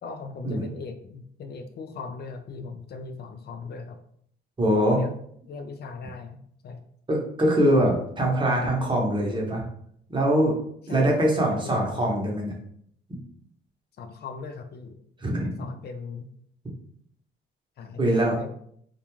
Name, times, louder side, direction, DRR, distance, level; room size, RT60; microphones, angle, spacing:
voice 1, 0.0-4.0 4.7-5.1 5.5-6.8 10.9-11.7 14.0-15.0 15.4-16.3 17.8-18.5, left 4 dB, 55° left, 7 dB, 0.4 m, -39 dB
voice 2, 4.6-5.0 7.1-9.6 10.1-10.5 10.9-12.5 13.1-13.2 15.2-15.5 18.0-18.4, right 1 dB, 25° right, -1 dB, 0.8 m, -23 dB
2.4 x 2.2 x 3.0 m, 0.66 s
cardioid pair, 90°, 20 cm